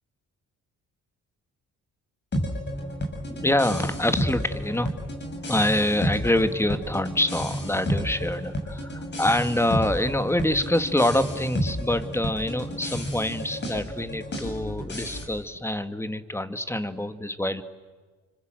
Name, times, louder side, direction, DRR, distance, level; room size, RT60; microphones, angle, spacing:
sound 1, 2.3-15.2, equal, 35° left, 7.4 m, -31 dB
voice 1, 3.3-4.9 5.5-17.6, left 1 dB, 10° left, 10 dB, 2.0 m, -26 dB
30.0 x 25.5 x 7.8 m, 1.4 s
cardioid pair, 90°, 30 cm